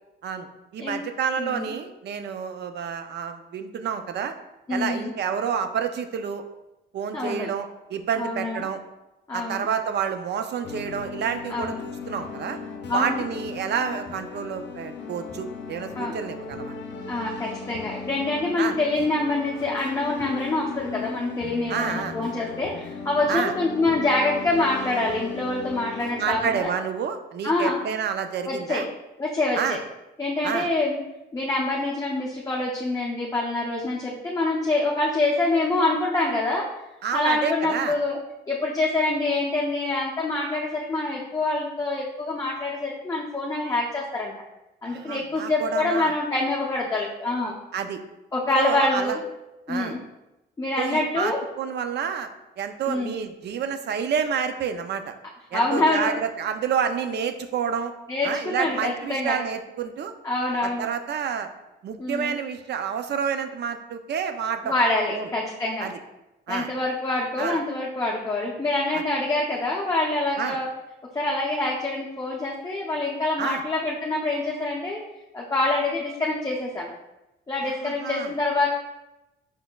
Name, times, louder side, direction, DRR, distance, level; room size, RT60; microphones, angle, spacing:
voice 1, 0.7-4.3 4.7-6.4 6.9-8.8 9.3-12.6 12.9-16.7 18.6-18.8 21.7-22.2 23.3-23.5 26.2-28.8 29.6-29.8 30.4-30.7 37.0-38.0 44.8-46.1 47.7-48.0 48.5-49.2 49.7-50.0 50.8-52.3 52.6-55.1 55.5-57.9 58.2-60.1 60.6-61.5 61.8-64.7 65.1-65.3 65.8-66.0 66.5-66.7 67.4-67.6 70.4-70.6 73.4-73.6 77.6-78.3, right 7 dB, 60° right, 8 dB, 0.5 m, -29 dB
voice 2, 4.7-5.1 7.1-7.5 8.2-8.6 9.3-9.7 11.5-11.8 12.9-13.2 16.0-16.1 17.1-26.7 27.4-27.8 28.4-28.9 29.2-29.8 30.2-31.0 31.3-36.7 37.1-38.2 38.5-44.3 44.8-47.5 48.3-49.2 49.7-50.0 50.6-51.4 52.9-53.2 55.5-56.1 58.1-59.4 60.2-60.9 62.0-62.4 64.6-65.9 66.5-70.7 71.1-75.0 75.3-76.9 77.5-78.7, left 2 dB, 15° left, -3 dB, 0.7 m, -26 dB
sound 1, 10.6-26.6, left 5 dB, 65° left, 0.6 m, -37 dB
5.2 x 4.2 x 2.3 m, 0.96 s
cardioid pair, 90°, 20 cm